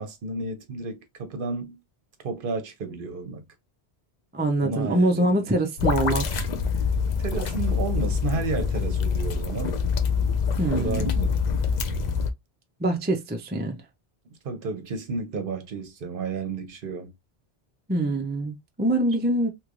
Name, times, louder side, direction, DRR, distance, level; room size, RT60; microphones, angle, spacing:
voice 1, 0.0-1.8 2.2-3.4 4.6-5.5 7.2-9.8 10.8-11.4 14.4-17.1, right 4 dB, 60° right, 0.9 m, -32 dB
voice 2, 4.3-6.3 10.6-11.1 12.8-13.8 17.9-19.5, right 1 dB, 15° right, 0.4 m, -24 dB
sound 1, 5.8-12.3, left 5 dB, 55° left, 0.5 m, -25 dB
3.1 x 2.9 x 2.4 m
omnidirectional pair, 1.1 m